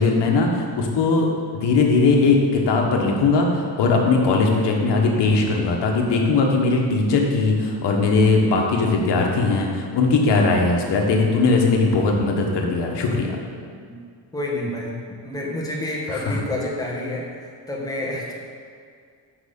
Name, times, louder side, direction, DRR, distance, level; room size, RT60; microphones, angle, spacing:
voice 1, 0.0-3.5 3.8-13.4 16.1-16.3, left 3 dB, 60° left, 1 dB, 1.4 m, -19 dB
voice 2, 14.3-18.3, left 1 dB, 10° left, -4 dB, 1.3 m, -29 dB
6.2 x 5.5 x 6.9 m, 2.2 s
cardioid pair, 155°, 47 cm